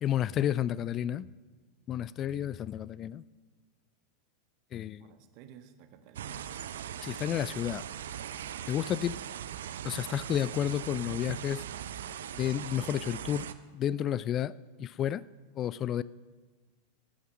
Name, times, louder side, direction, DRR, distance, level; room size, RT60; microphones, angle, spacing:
voice 1, 0.0-1.3 1.9-3.2 4.7-5.0 7.0-7.8 8.7-9.2 9.8-11.6 12.3-13.5 13.7-15.2 15.6-16.0, left 10 dB, 30° left, 0.4 m, -31 dB
voice 2, 4.7-6.6, right 7 dB, 45° right, 1.3 m, -53 dB
sound 1, 6.2-13.5, right 10 dB, 60° right, 0.6 m, -40 dB
17.0 x 9.2 x 6.2 m
figure-of-eight pair, 90°, 0 cm